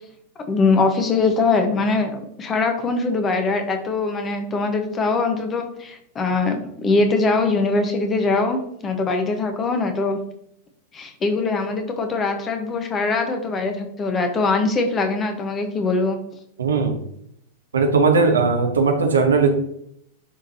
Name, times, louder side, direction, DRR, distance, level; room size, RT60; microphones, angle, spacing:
voice 1, 0.5-10.2 10.9-16.2, left 3 dB, 25° left, 6 dB, 1.2 m, -22 dB
voice 2, 16.6-17.0 17.7-19.5, right 4 dB, 70° right, 4 dB, 1.2 m, -18 dB
11.0 x 3.9 x 2.9 m, 0.72 s
figure-of-eight pair, 90°, 0 cm